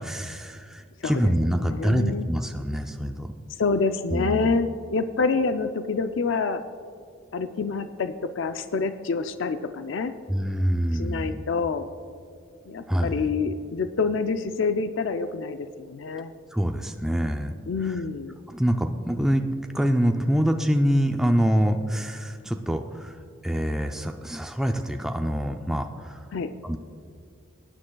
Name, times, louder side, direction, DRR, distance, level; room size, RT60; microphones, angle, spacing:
voice 1, 0.0-3.3 4.1-4.5 10.3-11.4 12.9-13.3 16.5-17.5 17.8-18.0 18.5-19.4 19.7-26.3 26.6-26.8, equal, ahead, 4 dB, 0.3 m, -25 dB
voice 2, 1.7-2.3 3.6-6.6 7.3-10.1 10.9-11.9 12.7-16.3 17.7-18.4 26.3-26.5, left 4 dB, 70° left, 9 dB, 0.4 m, -27 dB
19.0 x 9.8 x 2.3 m, 2.3 s
head